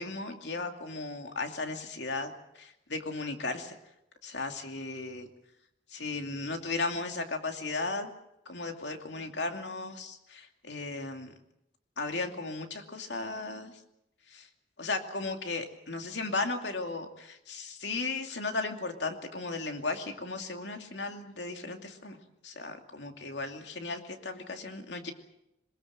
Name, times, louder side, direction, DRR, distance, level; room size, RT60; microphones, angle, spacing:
voice 1, 0.0-3.8 4.2-5.3 5.9-8.1 8.5-11.3 12.0-13.7 14.3-14.5 14.8-22.2 22.4-25.1, left 3 dB, 80° left, 5 dB, 2.6 m, -36 dB
22.5 x 21.0 x 7.7 m, 0.83 s
head